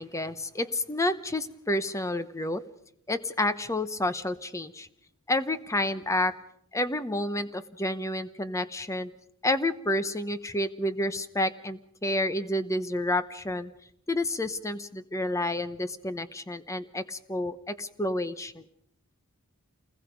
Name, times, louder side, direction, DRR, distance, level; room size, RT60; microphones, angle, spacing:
voice 1, 0.0-2.6 3.1-4.9 5.3-6.4 6.7-9.1 9.4-13.7 14.1-18.6, left 1 dB, 15° left, 12 dB, 0.9 m, -29 dB
28.0 x 20.5 x 5.3 m, 0.70 s
head